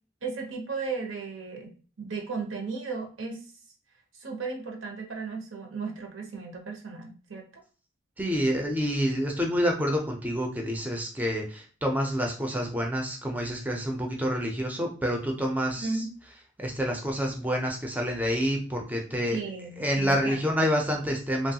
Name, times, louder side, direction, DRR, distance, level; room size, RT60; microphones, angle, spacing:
voice 1, 0.2-3.5 4.1-7.6 15.8-16.1 19.3-20.4, right 4 dB, 80° right, 2 dB, 0.8 m, -35 dB
voice 2, 8.2-16.0 16.6-19.4 19.8-21.5, equal, 10° right, 1 dB, 0.4 m, -28 dB
3.0 x 2.3 x 2.7 m, 0.38 s
head